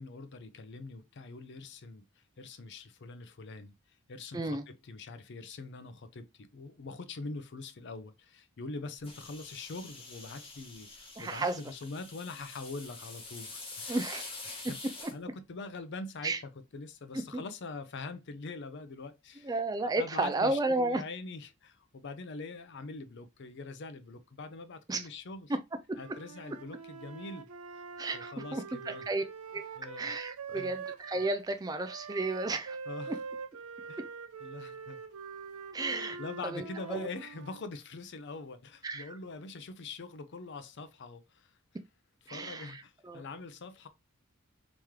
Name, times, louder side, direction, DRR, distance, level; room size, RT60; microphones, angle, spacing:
voice 1, 0.0-3.7 4.1-14.0 14.7-14.8 15.1-19.5 19.8-25.5 26.0-27.5 27.7-27.8 28.1-29.1 29.8-30.1 30.5-30.8 32.9-33.2 33.8-34.0 34.4-35.0 36.2-41.6 42.3-43.9, left 3 dB, 50° left, 0.5 m, -43 dB
voice 2, 4.3-4.6 11.2-11.6 13.9-14.3 16.2-16.4 17.3-17.4 19.4-21.0 24.9-25.1 25.5-25.6 25.9-26.0 28.0-29.2 29.5-29.6 30.0-32.8 33.1-33.2 35.7-36.2 36.4-37.1 38.8-39.2 42.3-43.2, right 2 dB, 15° right, 0.3 m, -33 dB
sound 1, 9.0-15.1, left 3 dB, 25° left, 1.2 m, -46 dB
Wind instrument woodwind instrument, 25.9-31.3 31.8-37.7, right 5 dB, 75° right, 0.6 m, -44 dB
3.6 x 3.0 x 3.0 m
head